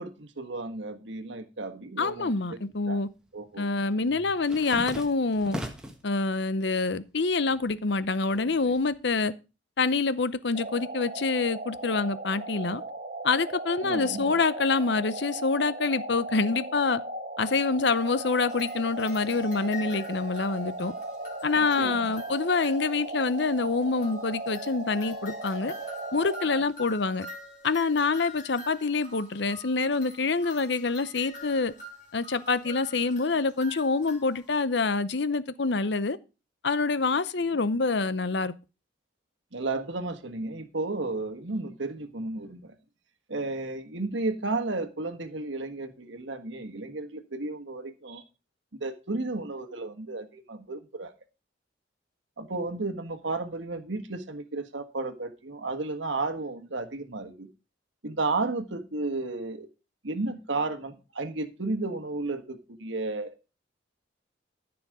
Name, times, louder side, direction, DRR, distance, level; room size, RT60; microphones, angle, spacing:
voice 1, 0.0-2.3 2.9-3.0 3.3-3.7 13.8-14.4 21.6-22.1 39.5-42.7 43.3-48.2 48.8-51.1 52.4-57.5 58.0-59.7 60.0-63.3, right 3 dB, 75° right, 1.5 m, -33 dB
voice 2, 2.0-3.1 3.6-5.6 6.0-9.3 9.8-12.8 13.2-17.0 17.4-20.9 21.4-25.7 26.1-27.3 27.6-31.7 32.1-36.2 36.6-38.5, left 4 dB, 65° left, 0.7 m, -26 dB
sound 1, 2.2-3.0 3.3-6.1 6.5-7.2 7.5-9.2, equal, 5° right, 1.3 m, -40 dB
sound 2, 10.5-26.6, right 2 dB, 40° right, 1.3 m, -37 dB
sound 3, 17.9-23.3 24.0-34.6, left 2 dB, 40° left, 3.8 m, -46 dB
14.0 x 6.1 x 4.9 m
head